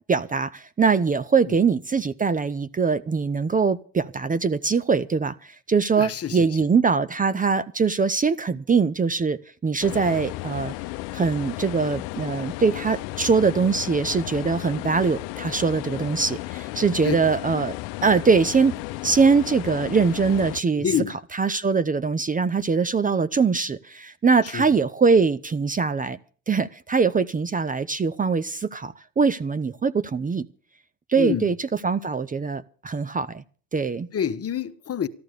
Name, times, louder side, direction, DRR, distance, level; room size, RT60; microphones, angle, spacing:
voice 1, 0.1-10.7 11.1-17.7 18.0-18.7 19.0-20.9 21.4-26.2 26.5-30.5 31.1-33.4 33.7-34.1, right 5 dB, 20° right, 0.7 m, -22 dB
voice 2, 5.9-6.7 17.0-17.1 20.8-21.2 24.4-24.8 31.1-31.5 34.1-35.1, left 8 dB, 40° left, 1.3 m, -27 dB
sound 1, 9.8-20.6, left 20 dB, 85° left, 0.6 m, -34 dB
14.0 x 11.5 x 6.7 m
supercardioid pair, 90°, 36 cm